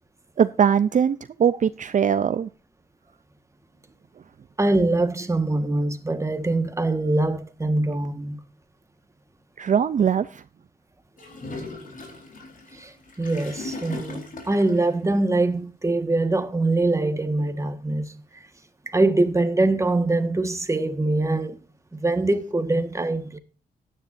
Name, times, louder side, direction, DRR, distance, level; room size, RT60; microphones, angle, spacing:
voice 1, 0.4-2.5 9.6-10.4, right 7 dB, 55° right, 0.5 m, -21 dB
voice 2, 4.6-8.4 12.7-18.1 18.9-21.6 21.9-23.4, right 2 dB, 20° right, 1.5 m, -23 dB
Gurgling / Toilet flush, 11.2-14.9, left 2 dB, 55° left, 4.1 m, -38 dB
16.0 x 10.0 x 2.6 m
wide cardioid pair, 100°, 16 cm